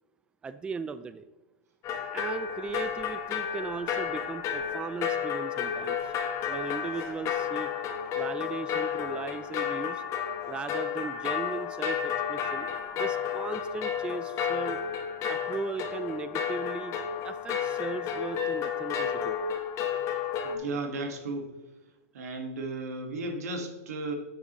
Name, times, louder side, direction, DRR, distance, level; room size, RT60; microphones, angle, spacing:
voice 1, 0.4-1.2 2.1-6.1 6.5-7.7 8.2-10.0 10.5-14.8 15.3-19.4, right 5 dB, 10° right, 12 dB, 0.3 m, -37 dB
sound 1, 1.8-20.6, left 8 dB, 35° left, 1.2 m, -32 dB
voice 2, 20.4-21.5 22.1-24.1, right 3 dB, 80° right, 4 dB, 1.8 m, -34 dB
9.5 x 7.2 x 3.1 m, 1.2 s
hypercardioid pair, 125°, 8 cm